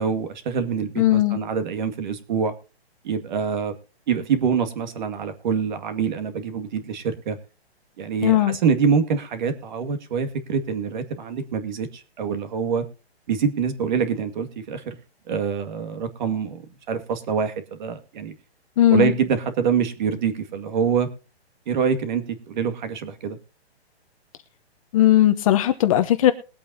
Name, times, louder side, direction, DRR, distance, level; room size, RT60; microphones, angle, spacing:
voice 1, 0.0-2.5 3.0-3.7 4.1-7.4 8.0-12.8 13.3-15.0 15.3-18.3 18.9-21.1 21.7-23.4, right 6 dB, 45° right, 8 dB, 2.1 m, -25 dB
voice 2, 1.0-1.4 8.2-8.6 18.8-19.1 24.9-26.3, left 13 dB, 30° left, 10 dB, 1.0 m, -17 dB
21.5 x 8.4 x 2.7 m, 0.34 s
hypercardioid pair, 155°, 33 cm